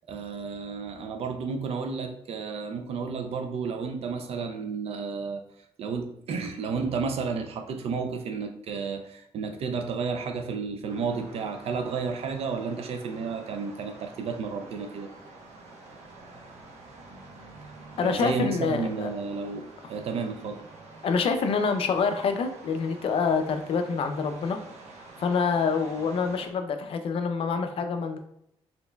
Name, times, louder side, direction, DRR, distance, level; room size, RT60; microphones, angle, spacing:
voice 1, 0.1-5.4 5.8-15.1 18.0-20.6, right 5 dB, 65° right, 5 dB, 0.4 m, -32 dB
sound 1, 10.9-26.5, right 3 dB, 90° right, 0.9 m, -48 dB
voice 2, 18.0-19.1 21.0-24.6 25.2-28.2, left 5 dB, 55° left, 7 dB, 0.5 m, -26 dB
4.2 x 3.9 x 2.2 m, 0.74 s
cardioid pair, 145°, 11 cm